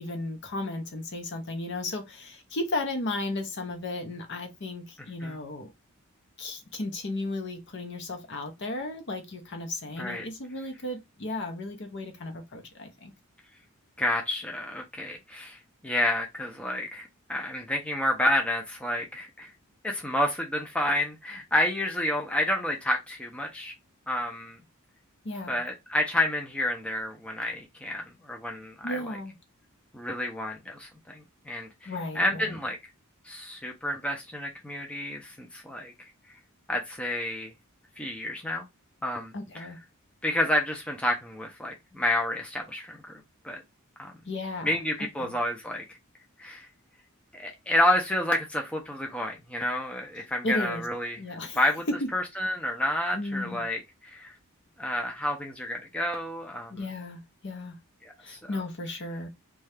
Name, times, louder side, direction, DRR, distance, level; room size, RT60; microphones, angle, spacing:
voice 1, 0.0-5.7 6.4-13.1 25.2-25.6 28.8-29.3 31.9-32.6 39.3-39.8 44.3-45.3 50.4-50.9 51.2-51.6 51.9-52.1 53.1-53.6 56.7-57.8 58.2-59.3, left 2 dB, 55° left, 0.7 m, -34 dB
voice 2, 14.0-15.6 15.8-19.5 19.8-23.7 24.1-24.6 25.5-29.2 29.9-32.8 33.3-35.9 36.7-37.5 38.0-38.7 39.0-39.7 40.2-43.0 43.4-43.6 44.0-44.1 44.6-45.8 46.4-46.7 47.3-51.2 51.5-51.8 52.1-54.3 54.8-56.7 58.0-58.6, left 1 dB, 5° left, 0.5 m, -29 dB
2.7 x 2.3 x 3.3 m
head